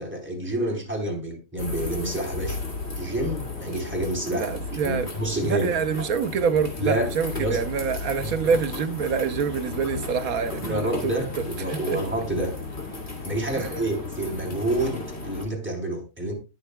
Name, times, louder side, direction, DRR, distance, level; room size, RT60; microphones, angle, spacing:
voice 1, 0.0-2.6 3.0-4.5 4.8-5.7 6.8-7.1 7.4-7.6 8.2-8.3 10.6-11.3 11.6-12.6 13.2-16.3, right 1 dB, 10° right, 3.7 m, -28 dB
sound 1, 1.6-15.4, left 3 dB, 50° left, 2.9 m, -34 dB
voice 2, 4.3-5.1 5.4-11.1 11.7-12.0 13.6-13.7, right 6 dB, 85° right, 1.4 m, -26 dB
20.0 x 6.9 x 2.3 m
omnidirectional pair, 1.5 m